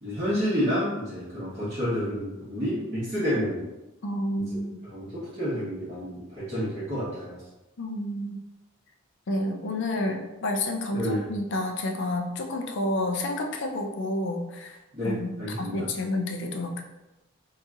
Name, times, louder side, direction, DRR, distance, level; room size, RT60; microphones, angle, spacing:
voice 1, 0.0-3.6 4.4-4.6 4.9-7.4 10.9-11.2 14.9-15.9, equal, 35° right, -12 dB, 1.1 m, -29 dB
voice 2, 4.0-4.7 7.8-8.4 9.3-14.8 15.0-16.8, left 1 dB, 55° left, 3 dB, 0.4 m, -30 dB
4.0 x 2.8 x 2.4 m, 1.0 s
head